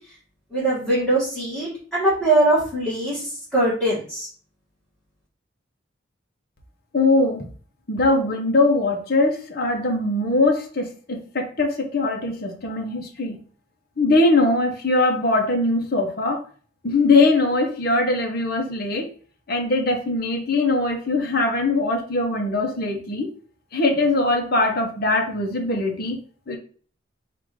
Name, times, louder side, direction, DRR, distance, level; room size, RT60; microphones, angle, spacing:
voice 1, 0.5-4.3, right 2 dB, ahead, -11 dB, 1.6 m, -22 dB
voice 2, 6.9-7.5 7.9-13.4 14.0-16.4 16.8-19.1 19.5-23.3 23.7-26.2 26.5-26.6, left 2 dB, 50° left, 2 dB, 0.8 m, -21 dB
3.8 x 2.5 x 4.6 m, 0.43 s
head